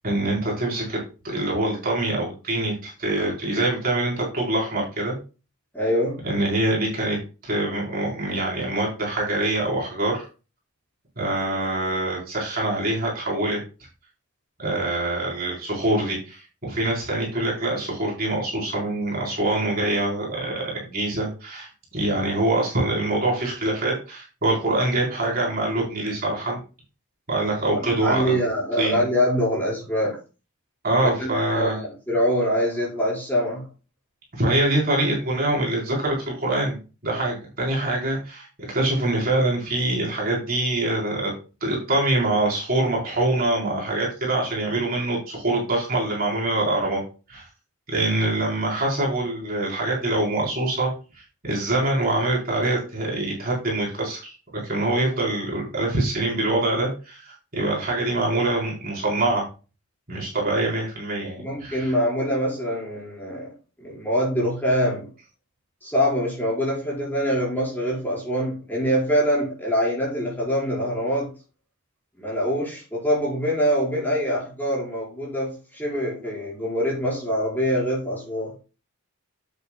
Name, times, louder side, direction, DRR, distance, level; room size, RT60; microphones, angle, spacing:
voice 1, 0.0-5.2 6.2-7.2 7.4-10.2 11.2-13.6 14.6-26.6 27.3-28.4 28.8-29.0 30.8-31.8 34.3-36.8 37.0-38.5 38.7-41.3 41.6-47.0 47.3-47.4 47.9-59.4 60.1-61.9, right 2 dB, 40° right, -3 dB, 4.0 m, -24 dB
voice 2, 5.7-6.2 28.0-30.1 31.0-33.6 61.4-63.5 63.8-65.1 65.8-71.3 72.2-78.5, equal, 10° left, -5 dB, 4.8 m, -24 dB
9.2 x 8.6 x 2.3 m, 0.32 s
head